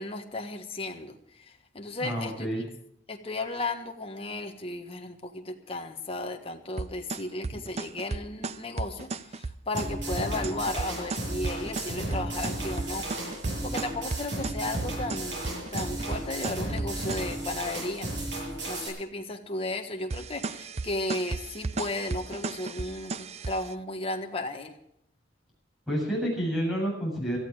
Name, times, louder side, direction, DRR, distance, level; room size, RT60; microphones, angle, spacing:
voice 1, 0.0-2.7 3.1-13.1 13.6-18.1 18.6-24.8, left 2 dB, 30° left, 4 dB, 1.5 m, -35 dB
voice 2, 2.0-2.6 25.9-27.4, equal, ahead, -3 dB, 7.7 m, -29 dB
sound 1, 6.8-17.4 20.1-23.7, right 3 dB, 35° right, 0.5 m, -35 dB
sound 2, 9.7-18.9, right 1 dB, 75° right, 7.6 m, -34 dB
18.0 x 13.5 x 4.9 m, 0.74 s
head